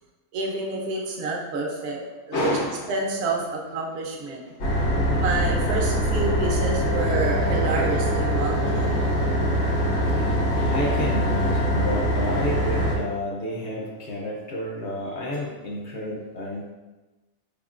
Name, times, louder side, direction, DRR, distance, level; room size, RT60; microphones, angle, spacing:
voice 1, 0.3-2.6 2.9-4.4 5.2-8.9, right 3 dB, 55° right, 0 dB, 0.8 m, -28 dB
voice 2, 2.3-5.6 6.9-7.0 7.7-7.9 9.2-16.7, left 1 dB, 60° left, -2 dB, 0.8 m, -32 dB
sound 1, 4.6-12.9, equal, 80° left, 1.5 m, -23 dB
4.6 x 3.6 x 2.4 m, 1.1 s
omnidirectional pair, 1.6 m